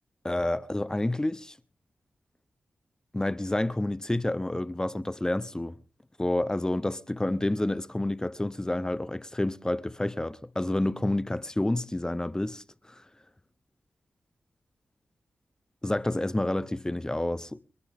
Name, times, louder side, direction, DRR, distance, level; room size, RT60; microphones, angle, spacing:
voice 1, 0.2-1.6 3.1-5.7 6.2-13.0 15.8-17.6, left 1 dB, 15° left, 0.8 m, -29 dB
29.0 x 11.0 x 3.6 m
cardioid pair, 55°, 4 cm